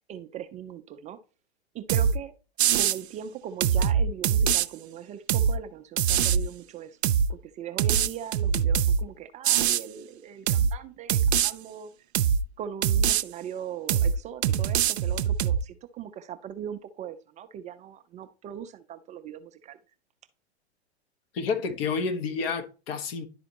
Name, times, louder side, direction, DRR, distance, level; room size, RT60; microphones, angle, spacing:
voice 1, 0.1-1.2 1.7-2.4 2.7-7.0 7.3-11.9 12.6-19.8, right 8 dB, 20° right, 0.4 m, -39 dB
sound 1, 1.9-2.2 2.6-3.0 3.6-4.7 5.3-5.6 6.0-6.4 7.0-7.3 7.8-9.0 9.4-9.8 10.5-10.7 11.1-11.5 12.1-12.4 12.8-13.2 13.9-14.2 14.4-15.6, right 8 dB, 75° right, 0.5 m, -23 dB
voice 2, 21.3-23.3, left 5 dB, 60° left, 1.1 m, -29 dB
11.0 x 4.1 x 2.9 m
hypercardioid pair, 100°, 33 cm